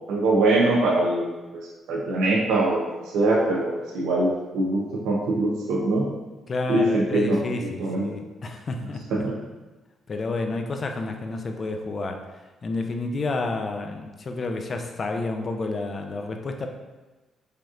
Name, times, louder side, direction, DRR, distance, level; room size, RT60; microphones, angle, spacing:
voice 1, 0.1-1.6 1.9-6.1 6.7-8.1 9.1-9.3, right 2 dB, 85° right, -3 dB, 0.6 m, -23 dB
voice 2, 6.5-9.0 10.1-12.3 12.6-16.7, left 3 dB, 40° left, 5 dB, 0.4 m, -30 dB
5.0 x 2.9 x 2.4 m, 1.2 s
cardioid pair, 90°, 0 cm